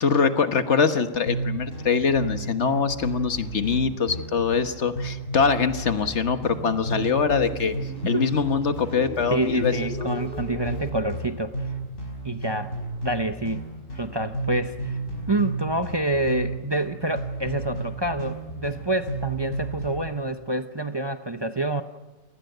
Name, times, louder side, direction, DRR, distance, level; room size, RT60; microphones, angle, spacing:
voice 1, 0.0-7.7 8.0-9.8, left 5 dB, 65° left, 9 dB, 1.6 m, -23 dB
sound 1, 1.3-20.1, right 2 dB, 85° left, 5.2 m, -33 dB
sound 2, 6.9-10.9, left 5 dB, 45° left, 3.2 m, -39 dB
voice 2, 9.3-11.5 12.2-12.8 13.0-13.7 13.9-15.0 15.3-21.8, right 2 dB, 25° right, 8 dB, 0.7 m, -27 dB
28.0 x 19.5 x 8.0 m, 1.2 s
omnidirectional pair, 1.3 m